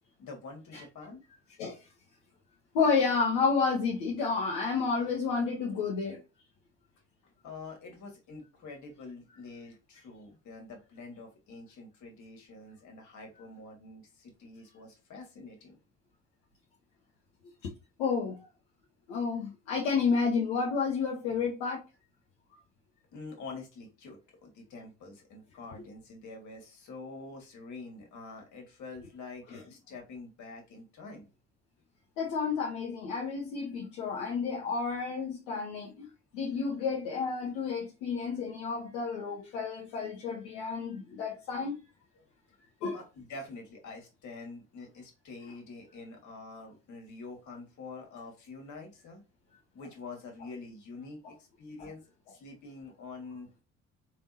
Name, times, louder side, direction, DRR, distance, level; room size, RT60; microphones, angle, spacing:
voice 1, 0.2-1.2 7.2-15.8 23.1-31.3 42.1-42.2 42.9-49.2 49.7-52.0 52.3-53.6, left 3 dB, 55° left, 2.1 m, -46 dB
voice 2, 2.7-6.2 17.6-17.7 18.0-18.5 19.1-21.8 29.5-29.6 32.2-36.1 36.3-41.8 42.8-43.0, left 5 dB, 75° left, 1.1 m, -30 dB
4.5 x 3.6 x 2.7 m
hypercardioid pair, 50°, 36 cm